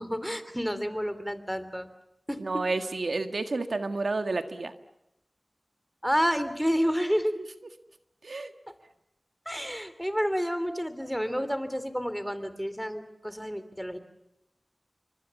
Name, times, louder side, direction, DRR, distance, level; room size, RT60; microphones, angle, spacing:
voice 1, 0.0-1.9 2.3-2.4 6.0-7.3 9.4-14.0, equal, ahead, 12 dB, 3.2 m, -29 dB
voice 2, 2.4-4.7 7.4-7.5 8.2-8.5, right 3 dB, 85° right, 8 dB, 1.6 m, -30 dB
29.5 x 25.0 x 7.1 m, 0.85 s
wide cardioid pair, 55°, 0 cm